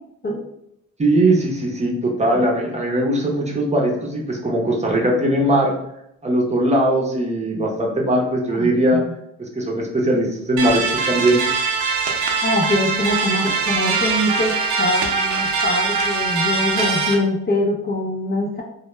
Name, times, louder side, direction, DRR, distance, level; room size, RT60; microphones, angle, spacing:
voice 1, 1.0-5.8 6.2-9.0 9.4-11.4, right 1 dB, 20° right, -2 dB, 0.6 m, -20 dB
voice 2, 8.5-9.1 12.4-18.6, left 1 dB, 35° left, -1 dB, 0.5 m, -23 dB
sound 1, 10.6-17.1, right 4 dB, 70° right, 0.6 m, -22 dB
2.1 x 2.1 x 3.0 m, 0.78 s
cardioid pair, 90°, 30 cm